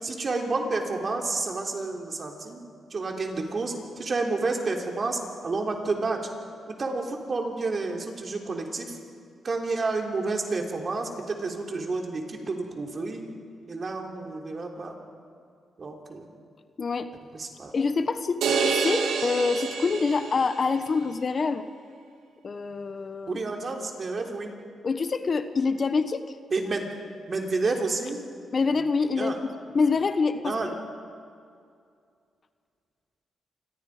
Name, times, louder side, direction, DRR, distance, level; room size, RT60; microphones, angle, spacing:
voice 1, 0.0-2.6 2.9-6.2 6.8-9.0 9.4-13.3 13.7-14.9 15.8-16.3 17.3-17.7 18.5-18.6 23.3-24.5 26.5-27.0 27.3-28.2 29.2-29.4 30.4-30.7, right 3 dB, 45° right, 2 dB, 3.6 m, -30 dB
voice 2, 16.8-17.1 17.7-21.6 22.4-23.4 24.8-26.2 28.5-29.4 29.7-30.7, left 4 dB, 45° left, 10 dB, 1.2 m, -26 dB
sound 1, 18.4-20.8, right 5 dB, 85° right, 2.2 m, -27 dB
27.5 x 21.5 x 5.0 m, 2.3 s
cardioid pair, 70°, 0 cm